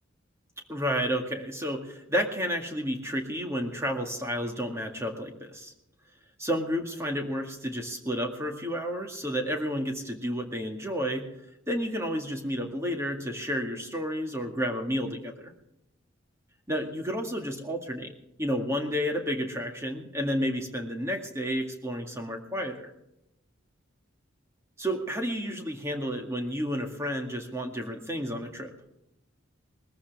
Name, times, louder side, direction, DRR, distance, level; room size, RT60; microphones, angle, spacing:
voice 1, 0.7-5.7 6.4-11.3 11.7-15.5 16.7-18.1 18.4-22.9 24.8-28.7, equal, 15° right, 3 dB, 2.0 m, -31 dB
20.5 x 14.5 x 3.5 m, 0.86 s
head